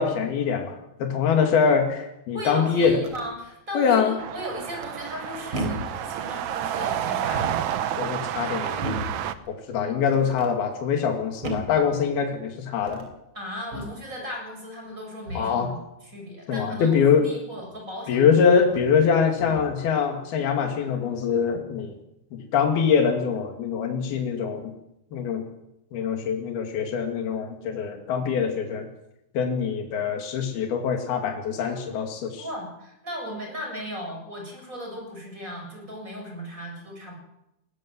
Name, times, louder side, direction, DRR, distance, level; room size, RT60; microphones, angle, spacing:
voice 1, 0.0-3.0 3.7-4.2 8.0-8.9 9.5-13.1 15.4-15.7 16.5-17.2 18.1-21.9 22.3-24.7 25.1-25.4 25.9-28.9 29.3-32.4, left 6 dB, 75° left, 3 dB, 4.2 m, -23 dB
voice 2, 2.3-7.9 13.3-18.4 32.4-37.1, equal, 20° right, 1 dB, 7.7 m, -36 dB
sound 1, 2.7-3.3 4.8-5.2 5.5-6.0 7.1-7.7 8.8-9.2 10.0-10.5 11.4-11.8 12.8-13.2 13.7-14.0 15.3-15.6 17.7-17.8 18.6-19.0 19.4-19.8, right 1 dB, 35° right, 4.2 m, -34 dB
sound 2, 4.2-9.3, right 10 dB, 70° right, 1.8 m, -30 dB
20.0 x 18.5 x 7.7 m, 0.87 s
omnidirectional pair, 4.5 m